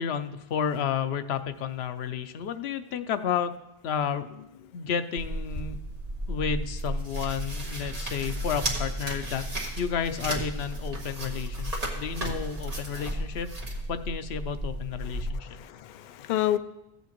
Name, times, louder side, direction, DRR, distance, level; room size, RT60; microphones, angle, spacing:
voice 1, 0.0-3.6 3.8-4.3 4.7-5.8 6.3-9.4 9.8-13.5 13.9-15.5, left 7 dB, 90° left, 11 dB, 0.9 m, -31 dB
sound 1, 5.2-15.3, right 1 dB, 40° right, 1.6 m, -33 dB
voice 2, 15.0-16.6, left 13 dB, 60° left, 11 dB, 0.6 m, -30 dB
15.0 x 8.4 x 3.0 m, 0.90 s
omnidirectional pair, 1.0 m